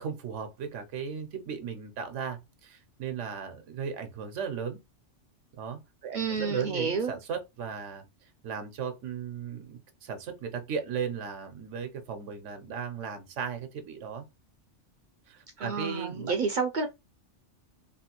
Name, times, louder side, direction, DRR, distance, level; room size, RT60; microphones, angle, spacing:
voice 1, 0.0-4.8 5.5-14.2 15.3-16.3, right 7 dB, 90° right, 1.0 m, -36 dB
voice 2, 6.1-7.1 15.6-16.9, right 4 dB, 60° right, 0.5 m, -30 dB
3.1 x 2.3 x 2.9 m
omnidirectional pair, 1.2 m